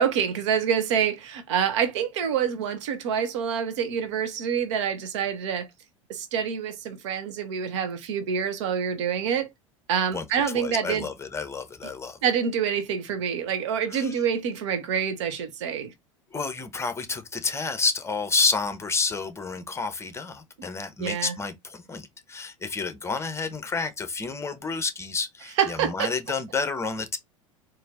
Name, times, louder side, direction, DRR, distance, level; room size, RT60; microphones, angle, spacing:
voice 1, 0.0-5.7 6.1-9.5 9.9-11.0 12.2-15.9 21.0-21.4 25.6-26.1, right 7 dB, 60° right, 0.8 m, -26 dB
voice 2, 10.5-12.2 13.9-14.1 16.3-27.2, left 4 dB, 15° left, 0.9 m, -30 dB
4.3 x 2.6 x 3.6 m
figure-of-eight pair, 80°, 17 cm